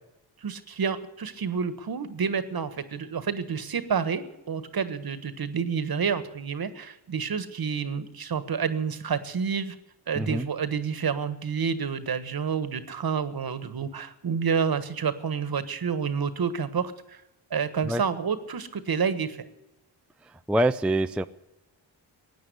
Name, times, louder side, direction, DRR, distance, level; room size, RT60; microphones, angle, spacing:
voice 1, 0.4-9.7 10.1-17.2 17.5-19.4, right 6 dB, 50° right, 12 dB, 1.5 m, -29 dB
voice 2, 10.2-10.5 17.8-18.0 20.3-21.2, right 1 dB, 5° right, 10 dB, 0.4 m, -25 dB
16.0 x 9.2 x 9.5 m, 0.97 s
cardioid pair, 65°, 47 cm